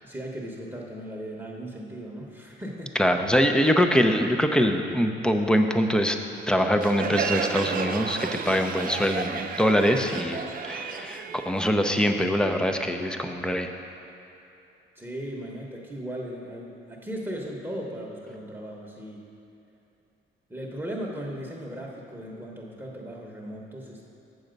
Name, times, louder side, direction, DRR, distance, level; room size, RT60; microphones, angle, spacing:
voice 1, 0.0-3.0 14.9-19.2 20.5-24.0, equal, 10° right, -3 dB, 1.1 m, -37 dB
voice 2, 3.0-6.2 6.5-13.7, equal, 5° left, 5 dB, 0.6 m, -23 dB
Crowd, 6.8-12.2, right 6 dB, 45° right, 0.5 m, -32 dB
7.9 x 7.1 x 5.2 m, 2.8 s
cardioid pair, 90°, 20 cm